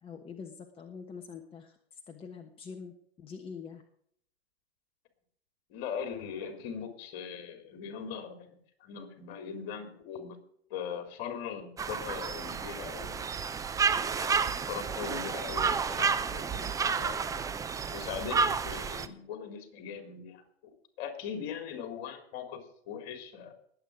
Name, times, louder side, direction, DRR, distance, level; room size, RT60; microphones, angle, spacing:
voice 1, 0.0-3.8, left 6 dB, 15° left, 4 dB, 1.2 m, -45 dB
voice 2, 5.7-10.4 10.7-13.3 14.2-17.4 17.9-23.5, left 7 dB, 45° left, 6 dB, 3.5 m, -40 dB
sound 1, 11.8-19.1, right 5 dB, 10° right, 0.6 m, -31 dB
20.5 x 8.6 x 5.0 m, 0.66 s
hypercardioid pair, 110°, 32 cm